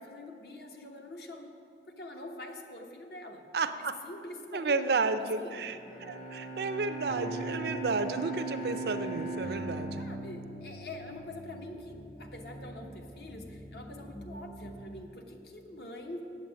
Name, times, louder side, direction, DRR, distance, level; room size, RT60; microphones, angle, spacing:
voice 1, 0.0-1.6 1.9-3.5 4.0-5.6 10.0-16.2, left 1 dB, 60° left, 3 dB, 1.0 m, -45 dB
voice 2, 3.5-4.0 4.5-5.8 6.1-10.1, right 4 dB, 65° right, 9 dB, 0.5 m, -32 dB
Bowed string instrument, 5.6-11.0, right 3 dB, 40° left, 0.8 m, -39 dB
sound 1, 7.1-15.0, equal, 15° left, 0.6 m, -44 dB
8.3 x 7.9 x 7.5 m, 2.6 s
head